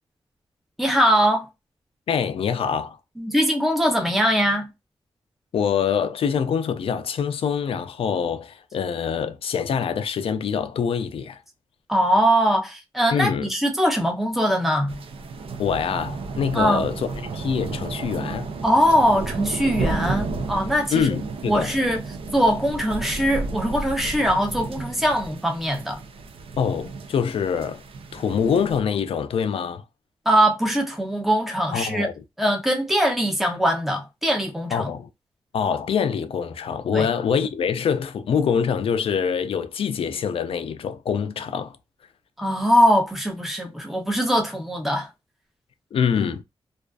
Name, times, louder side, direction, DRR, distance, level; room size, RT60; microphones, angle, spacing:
voice 1, 0.8-1.5 3.2-4.7 11.9-15.0 16.5-16.8 18.6-21.1 21.5-22.0 22.3-26.0 30.3-32.1 32.4-34.9 36.9-37.1 42.4-45.1, equal, ahead, 0.6 m, -21 dB
voice 2, 2.1-3.0 5.5-11.4 13.1-13.5 15.6-18.5 20.9-21.7 26.6-27.8 28.1-29.8 31.7-32.1 34.7-35.1 35.5-41.8 45.9-46.4, left 7 dB, 75° left, 0.4 m, -25 dB
sound 1, 14.9-28.8, right 3 dB, 75° right, 0.4 m, -32 dB
2.4 x 2.3 x 2.2 m
wide cardioid pair, 150°, 10 cm